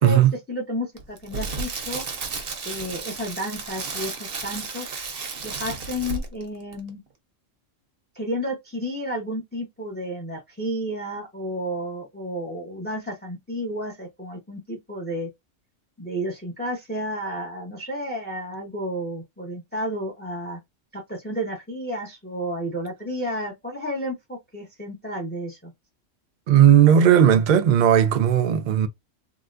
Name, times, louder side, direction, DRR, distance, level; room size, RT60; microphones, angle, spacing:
voice 1, 0.5-2.0 2.6-4.9 5.4-7.0 8.1-15.3 16.0-20.6 20.9-25.7, equal, 10° left, 0.7 m, -31 dB
Crackle, 1.0-6.5 6.7-6.9, right 4 dB, 50° right, 1.0 m, -33 dB
voice 2, 26.5-28.9, right 9 dB, 70° right, 0.4 m, -16 dB
3.8 x 2.2 x 2.4 m
omnidirectional pair, 1.3 m